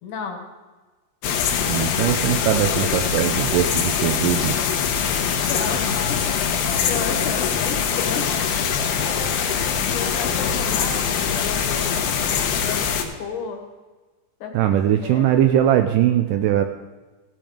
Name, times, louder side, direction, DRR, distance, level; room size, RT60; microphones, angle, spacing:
voice 1, 0.0-0.5 5.2-8.3 8.7-12.0 12.5-13.6 14.4-15.4, left 5 dB, 65° left, 3 dB, 2.8 m, -33 dB
sound 1, 1.2-13.0, left 7 dB, 80° left, 2.7 m, -23 dB
voice 2, 1.6-4.5 14.5-16.7, right 11 dB, 80° right, 7 dB, 2.0 m, -20 dB
16.0 x 7.1 x 5.1 m, 1.3 s
omnidirectional pair, 4.2 m